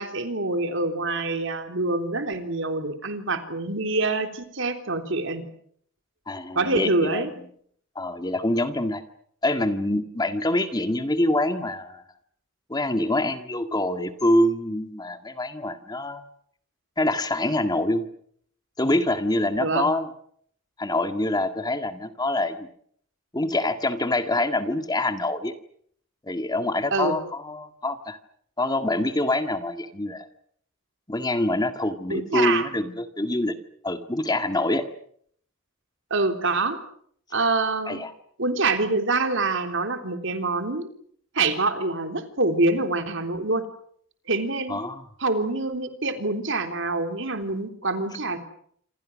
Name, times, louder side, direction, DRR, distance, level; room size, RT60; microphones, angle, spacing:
voice 1, 0.0-5.5 6.6-7.3 19.6-19.9 26.9-27.2 32.1-32.7 36.1-36.8 37.3-38.0 38.4-40.9 41.3-43.7 44.3-44.8 45.2-48.4, right 3 dB, 65° right, 7 dB, 3.6 m, -25 dB
voice 2, 6.3-7.3 8.0-9.0 9.4-12.0 12.7-16.2 17.0-18.1 18.8-20.1 20.8-22.7 23.3-25.5 26.2-28.2 28.6-30.3 31.1-33.6 33.8-34.9 37.9-38.1 44.7-45.0, left 1 dB, 20° left, 8 dB, 1.8 m, -25 dB
27.5 x 27.0 x 6.3 m, 0.64 s
head